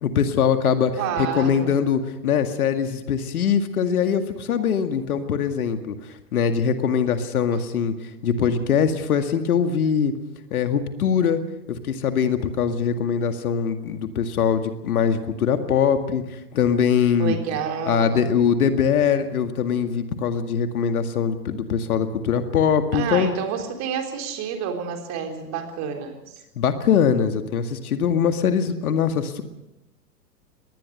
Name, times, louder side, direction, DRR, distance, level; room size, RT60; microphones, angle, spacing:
voice 1, 0.0-0.9 1.2-6.0 6.3-7.9 8.2-10.1 10.5-11.4 11.7-17.4 17.9-23.3 26.6-29.4, left 7 dB, 60° left, 8 dB, 2.1 m, -22 dB
voice 2, 1.0-1.8 17.2-18.3 22.9-26.3, right 7 dB, 35° right, 4 dB, 3.8 m, -29 dB
22.5 x 19.5 x 6.7 m, 0.92 s
figure-of-eight pair, 110°, 50 cm